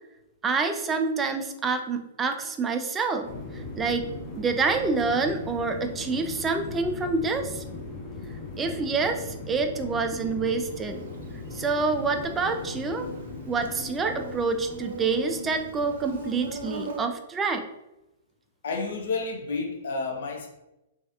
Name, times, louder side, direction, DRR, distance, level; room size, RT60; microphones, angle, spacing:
voice 1, 0.4-3.3 3.5-4.1 4.3-7.6 8.6-11.0 11.5-13.1 13.5-17.7, right 4 dB, 15° right, 5 dB, 0.4 m, -27 dB
sound 1, 3.2-16.6, left 3 dB, 25° left, 1.1 m, -39 dB
Insect, 10.7-17.0, right 2 dB, 55° right, 0.7 m, -41 dB
voice 2, 18.6-20.5, left 4 dB, 55° left, 3 dB, 0.6 m, -30 dB
3.9 x 2.4 x 2.7 m, 0.92 s
figure-of-eight pair, 110°, 0 cm